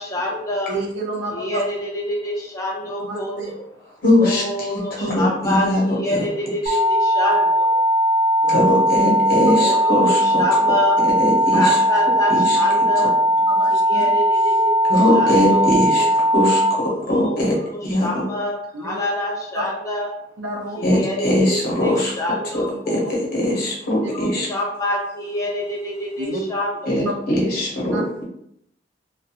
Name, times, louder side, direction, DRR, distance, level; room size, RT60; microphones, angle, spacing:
voice 1, 0.0-0.7 1.3-3.6 4.2-5.7 5.9-7.8 9.6-11.0 11.5-13.1 13.9-14.7 15.1-15.7 16.0-16.1 17.1-17.6 18.0-20.1 20.8-23.0 24.1-26.9, left 1 dB, 20° left, -3 dB, 0.5 m, -26 dB
voice 2, 0.7-1.6 3.0-3.5 6.2-6.3 8.4-8.7 12.7-13.1 13.5-14.1 16.8-16.9 18.7-19.0 19.6-19.7 20.4-20.8 22.7-22.8 26.2-26.4 27.9-28.0, right 1 dB, 90° right, 0 dB, 0.6 m, -30 dB
voice 3, 4.0-6.2 6.6-6.8 8.5-10.4 11.2-11.8 12.3-12.6 13.0-13.1 14.8-17.6 17.8-18.2 20.8-22.1 22.5-24.5 26.9-28.2, left 1 dB, 55° left, -4 dB, 0.8 m, -21 dB
sound 1, 6.7-16.7, right 1 dB, 45° right, 0.7 m, -18 dB
2.4 x 2.2 x 2.7 m, 0.75 s
head